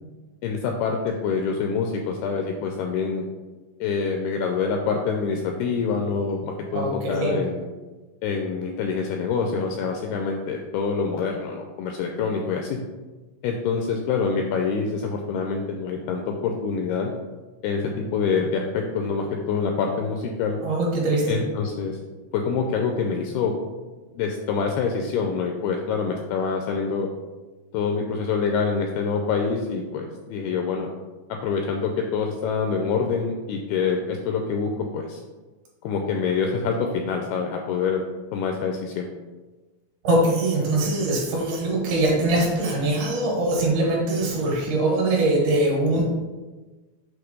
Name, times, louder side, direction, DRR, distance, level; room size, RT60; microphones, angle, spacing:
voice 1, 0.4-3.2 3.8-7.6 8.2-12.8 13.4-17.1 17.6-20.6 21.3-22.0 22.3-23.5 24.1-27.1 27.7-30.9 31.3-35.2 35.8-38.0 38.3-39.1, left 5 dB, 85° left, 2 dB, 2.2 m, -26 dB
voice 2, 6.7-7.4 20.6-21.4 40.0-46.0, right 2 dB, 70° right, -3 dB, 3.4 m, -22 dB
7.9 x 3.0 x 5.2 m, 1.2 s
omnidirectional pair, 4.9 m